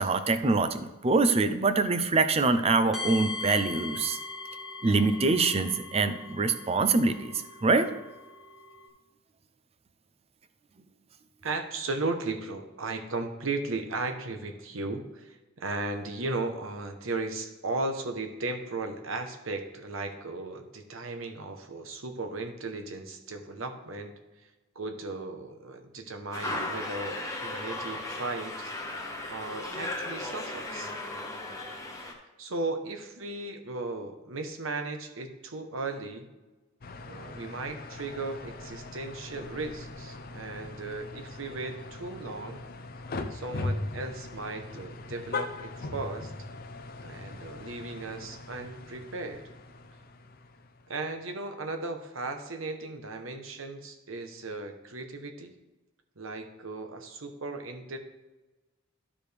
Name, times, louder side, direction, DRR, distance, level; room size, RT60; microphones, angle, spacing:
voice 1, 0.0-4.2 4.8-7.3 7.6-7.9, right 3 dB, 30° right, 10 dB, 0.5 m, -24 dB
sound 1, 2.9-8.9, left 3 dB, ahead, 1.6 m, -40 dB
voice 2, 11.4-24.2 24.7-28.7 29.3-30.9 32.0-36.3 37.0-42.6 43.3-46.3 47.0-49.5 50.9-55.6 56.2-58.0, right 3 dB, 80° right, 6 dB, 1.0 m, -36 dB
sound 2, 26.3-32.1, left 2 dB, 15° left, 1.0 m, -36 dB
sound 3, 36.8-51.1, left 2 dB, 45° left, 0.5 m, -40 dB
12.5 x 5.0 x 3.4 m, 1.1 s
head